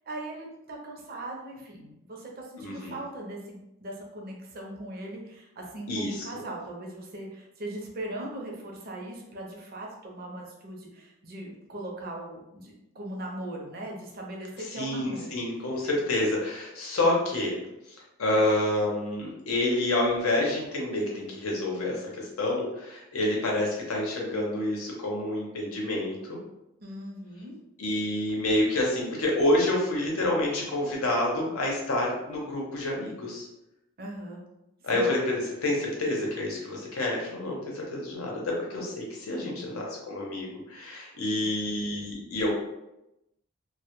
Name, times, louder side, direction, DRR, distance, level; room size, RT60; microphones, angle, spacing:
voice 1, 0.1-15.4 26.8-27.6 34.0-34.4 34.9-35.1 39.4-39.9, right 1 dB, 45° right, -1 dB, 0.5 m, -39 dB
voice 2, 2.6-3.0 5.9-6.2 14.7-17.6 17.9-26.4 27.8-33.5 34.8-42.5, left 1 dB, 90° left, -2 dB, 0.7 m, -28 dB
2.1 x 2.1 x 2.9 m, 0.91 s
head